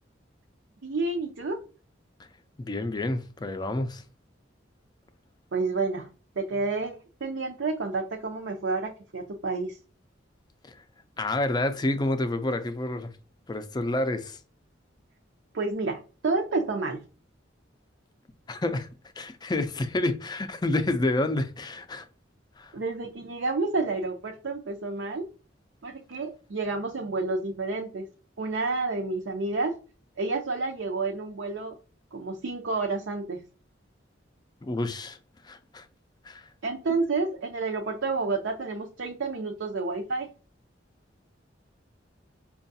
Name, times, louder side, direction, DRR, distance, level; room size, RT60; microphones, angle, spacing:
voice 1, 0.8-1.6 5.5-6.1 6.4-9.8 15.5-17.0 22.7-25.3 25.8-28.1 28.4-29.8 30.2-31.7 32.1-33.4 36.6-40.3, right 3 dB, 75° right, 0.6 m, -30 dB
voice 2, 2.6-4.0 10.7-10.8 11.2-13.1 13.5-14.4 18.5-18.9 19.2-22.0 22.6-22.7 34.6-35.2 35.4-35.9 36.2-36.5, left 2 dB, 20° left, 0.4 m, -29 dB
5.5 x 2.3 x 2.6 m
head